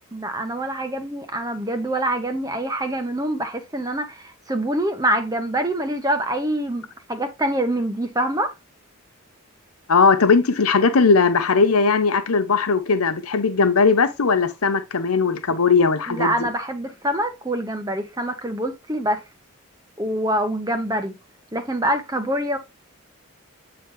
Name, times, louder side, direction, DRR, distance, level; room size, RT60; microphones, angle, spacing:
voice 1, 0.1-6.8 7.1-8.5 16.1-19.2 20.0-21.1 21.5-22.6, right 1 dB, 15° right, 0.9 m, -25 dB
voice 2, 9.9-16.5, left 4 dB, 90° left, 0.8 m, -18 dB
8.6 x 3.9 x 3.1 m
head